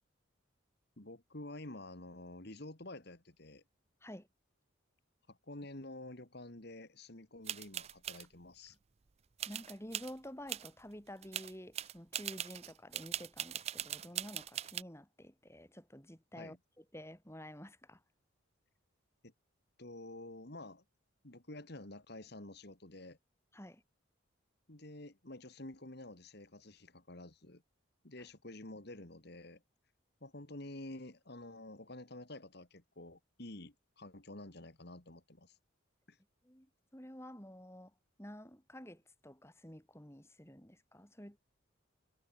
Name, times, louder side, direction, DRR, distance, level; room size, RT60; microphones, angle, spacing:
voice 1, 1.0-3.6 5.3-8.8 16.4-16.6 19.2-19.3 19.8-20.8 21.2-23.2 24.7-27.6 28.0-29.6 30.2-35.6 36.1-36.2, left 2 dB, 50° left, 2.2 m, -49 dB
sound 1, 7.4-8.2 9.4-10.1 10.5-10.7 11.1-14.8, right 10 dB, 30° right, 0.4 m, -41 dB
voice 2, 9.5-18.0 23.5-23.8 28.2-28.3 36.4-41.4, equal, 15° left, 6.9 m, -51 dB
head